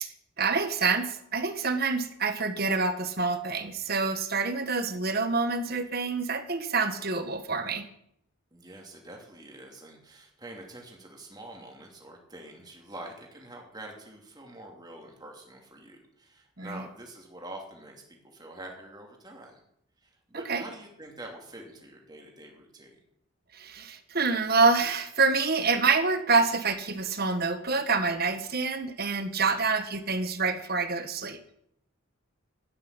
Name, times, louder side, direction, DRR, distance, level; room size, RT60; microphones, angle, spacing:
voice 1, 0.0-7.9 16.6-16.8 20.3-20.6 23.5-31.4, right 4 dB, 45° right, 9 dB, 1.4 m, -27 dB
voice 2, 8.5-19.6 20.0-23.0 29.4-29.7, right 1 dB, 20° right, 0 dB, 2.8 m, -46 dB
12.0 x 9.7 x 8.8 m, 0.73 s
head